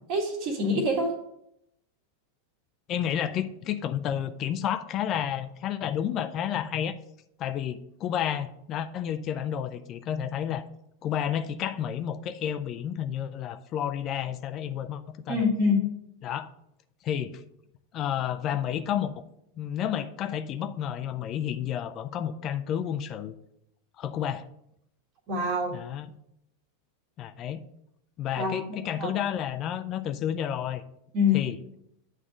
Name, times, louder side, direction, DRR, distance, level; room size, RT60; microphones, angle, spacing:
voice 1, 0.1-1.1 15.3-15.9 25.3-25.8 28.4-28.6 29.0-29.1 31.1-31.4, left 3 dB, 40° right, -2 dB, 1.8 m, -25 dB
voice 2, 2.9-7.0 7.4-10.6 11.0-15.4 16.2-16.5 17.0-17.4 17.9-19.1 19.6-23.3 24.0-24.5 25.7-26.1 27.2-27.6 28.2-30.8 31.3-31.6, left 9 dB, 35° left, 10 dB, 0.5 m, -31 dB
9.0 x 3.6 x 6.4 m, 0.75 s
figure-of-eight pair, 90°, 0 cm